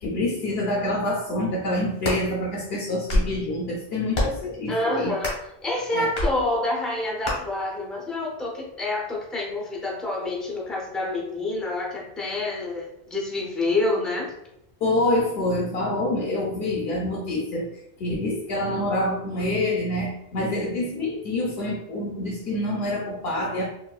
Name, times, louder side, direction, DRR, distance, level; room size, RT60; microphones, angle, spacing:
voice 1, 0.0-5.1 5.9-6.1 14.8-17.7 18.0-23.6, left 1 dB, 75° left, -2 dB, 0.8 m, -26 dB
sound 1, 1.8-2.2 2.9-3.4 4.1-4.5 5.2-5.5 6.1-6.3 7.2-7.4, left 1 dB, 90° left, 1.3 m, -25 dB
voice 2, 4.7-5.4 5.6-14.3, left 2 dB, ahead, -3 dB, 0.4 m, -27 dB
4.0 x 2.2 x 2.3 m, 0.81 s
omnidirectional pair, 1.0 m